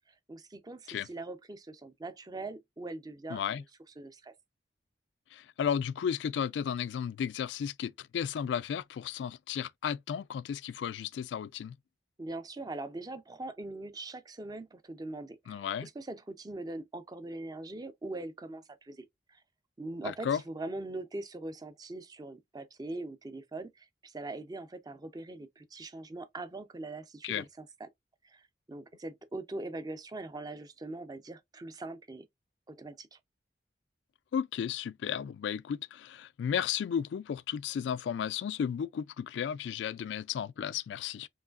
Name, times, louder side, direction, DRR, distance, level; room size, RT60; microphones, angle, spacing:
voice 1, 0.3-3.4 4.0-4.3 12.2-19.4 19.8-27.9 28.2-32.3 32.7-33.2, right 2 dB, 20° right, 0.4 m, -42 dB
voice 2, 3.3-3.6 5.3-11.8 15.5-15.9 20.0-20.4 27.2-27.4 34.3-41.3, left 8 dB, 85° left, 0.3 m, -34 dB
4.7 x 3.1 x 2.4 m
head